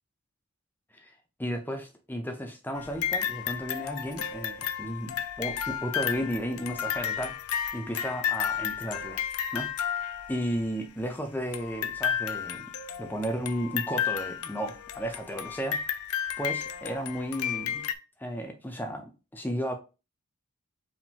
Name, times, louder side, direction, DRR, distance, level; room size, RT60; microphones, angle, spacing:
voice 1, 1.4-7.4 7.7-9.2 9.5-12.7 13.0-15.8 16.4-17.9 18.2-19.7, equal, 10° left, 0.7 m, -34 dB
sound 1, 2.7-10.6 11.5-17.9, left 9 dB, 85° left, 0.5 m, -32 dB
4.7 x 3.7 x 2.9 m
head